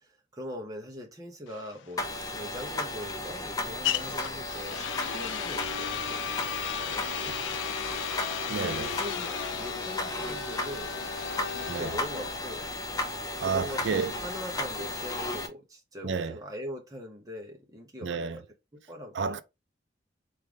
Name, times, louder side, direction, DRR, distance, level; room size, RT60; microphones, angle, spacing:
voice 1, 0.0-7.6 8.1-11.0 11.5-12.7 13.4-18.4 18.7-19.4, left 1 dB, 20° right, 1.0 m, -42 dB
sound 1, 1.5-15.3, left 8 dB, 80° left, 0.4 m, -36 dB
sound 2, 2.0-15.5, left 2 dB, 20° left, 0.6 m, -35 dB
voice 2, 8.5-8.9 11.7-11.9 13.4-14.1 16.0-16.4 18.0-18.4 19.1-19.4, right 5 dB, 70° right, 0.4 m, -31 dB
3.7 x 3.3 x 3.3 m
head